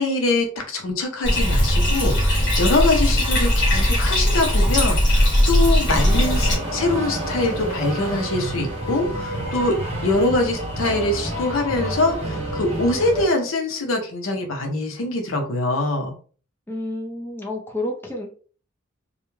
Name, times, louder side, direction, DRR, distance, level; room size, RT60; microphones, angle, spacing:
voice 1, 0.0-9.8 10.0-16.2, left 2 dB, 80° left, 3 dB, 0.6 m, -23 dB
Bathtub (filling or washing), 1.2-6.6, equal, 60° left, 1.1 m, -19 dB
sound 1, 5.9-13.3, right 1 dB, 30° right, 0.9 m, -29 dB
voice 2, 16.7-18.3, left 1 dB, 10° left, 0 dB, 0.5 m, -29 dB
2.3 x 2.1 x 3.0 m, 0.40 s
head